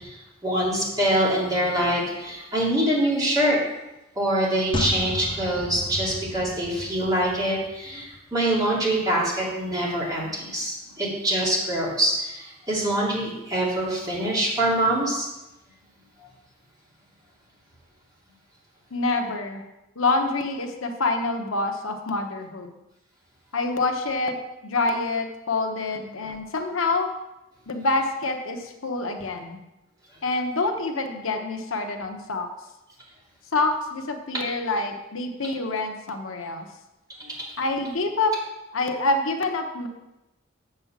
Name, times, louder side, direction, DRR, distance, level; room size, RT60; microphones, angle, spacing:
voice 1, 0.4-3.6 4.2-8.0 8.3-15.2 25.9-26.0 37.2-37.3, right 1 dB, 20° right, -5 dB, 2.8 m, -24 dB
sound 1, 4.7-8.2 8.5-8.6, left 2 dB, 25° left, 0.7 m, -33 dB
voice 2, 18.9-19.7 20.0-22.7 23.5-24.4 24.6-27.1 27.7-29.6 30.2-32.5 33.5-36.7 37.6-38.3 38.7-39.9, left 3 dB, 80° left, 5 dB, 1.0 m, -26 dB
7.3 x 5.4 x 7.2 m, 0.97 s
head